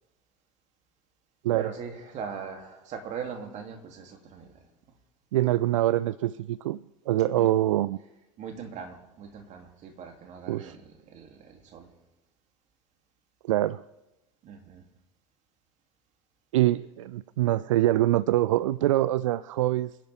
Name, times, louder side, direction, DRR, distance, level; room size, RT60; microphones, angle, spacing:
voice 1, 1.5-4.7 7.3-7.5 8.4-11.9 14.4-14.9, right 6 dB, 45° right, 3 dB, 2.9 m, -40 dB
voice 2, 5.3-8.0 10.5-10.8 13.4-13.8 16.5-20.0, right 14 dB, 70° right, 19 dB, 0.4 m, -24 dB
27.5 x 10.5 x 3.6 m, 1.0 s
figure-of-eight pair, 75°, 17 cm